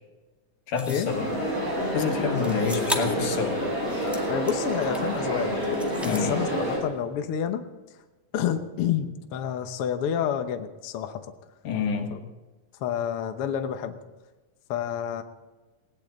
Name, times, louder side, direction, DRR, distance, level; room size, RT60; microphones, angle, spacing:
voice 1, 0.7-1.3 1.9-3.6 6.0-6.4 11.6-12.2, left 6 dB, 90° left, 3 dB, 3.3 m, -28 dB
sound 1, 0.7-1.1 2.4-3.2 3.7-5.2 5.6-6.3, equal, ahead, 1.1 m, -35 dB
sound 2, 1.0-6.8, equal, 25° right, 6.3 m, -28 dB
voice 2, 4.3-5.6 6.0-7.6 8.3-11.3 12.1-12.2 12.8-14.0 14.7-15.2, left 9 dB, 60° left, 7 dB, 1.6 m, -29 dB
19.5 x 17.5 x 4.0 m, 1.2 s
omnidirectional pair, 3.5 m